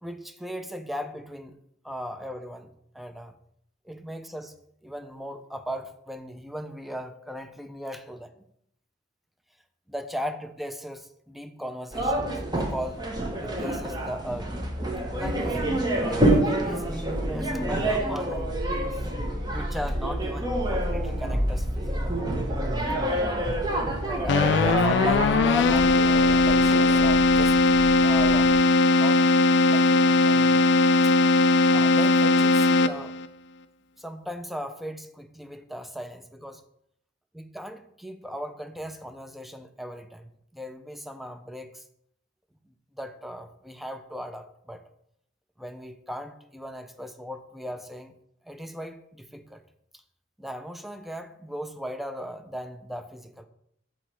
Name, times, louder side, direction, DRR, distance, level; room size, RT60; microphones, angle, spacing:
voice 1, 0.0-1.6 1.8-3.3 3.8-4.5 4.8-8.3 9.9-13.0 13.4-14.6 15.1-15.7 16.0-19.1 19.5-22.3 22.9-23.1 24.1-27.6 28.0-28.6 28.9-29.2 29.6-30.7 31.0-31.1 31.7-33.1 34.0-36.6 37.3-41.9 42.9-44.8 45.6-48.1 48.4-49.6 49.9-50.0 50.4-53.5, equal, ahead, 8 dB, 0.5 m, -37 dB
sound 1, 11.9-28.6, right 1 dB, 20° right, 1.0 m, -28 dB
Keyboard (musical), 24.3-33.3, left 3 dB, 65° left, 0.4 m, -19 dB
7.7 x 3.1 x 6.1 m, 0.73 s
head